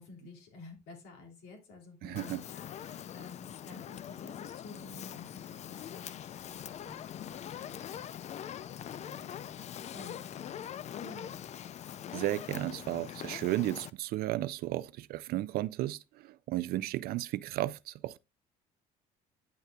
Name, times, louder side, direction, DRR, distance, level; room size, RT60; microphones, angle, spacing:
voice 1, 0.0-8.5 8.8-10.6 11.0-11.4, left 3 dB, 85° left, 2.8 m, -52 dB
voice 2, 2.0-2.4 12.1-18.2, right 15 dB, 65° right, 0.4 m, -34 dB
Fire, 2.2-13.9, left 10 dB, 45° left, 0.4 m, -43 dB
9.4 x 6.6 x 2.3 m
cardioid pair, 95°, 17 cm